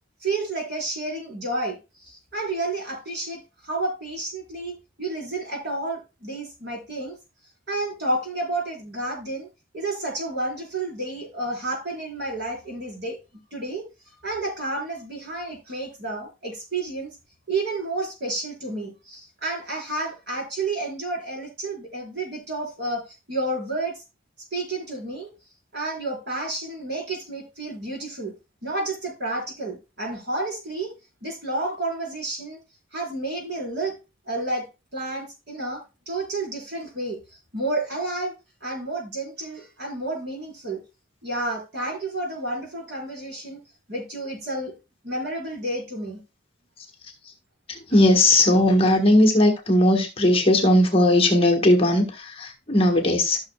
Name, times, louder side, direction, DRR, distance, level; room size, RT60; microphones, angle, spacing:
voice 1, 0.2-7.2 7.7-9.5 9.7-13.2 13.5-13.9 14.2-17.1 17.5-24.0 24.5-25.3 25.7-28.3 28.6-30.9 31.2-32.6 32.9-34.0 34.3-34.7 34.9-37.2 37.5-38.3 38.6-40.8 41.2-43.6 43.9-44.7 45.0-46.2, right 2 dB, 55° right, 4.5 m, -30 dB
voice 2, 47.7-53.4, left 1 dB, 30° left, 1.3 m, -18 dB
14.0 x 6.3 x 2.3 m
head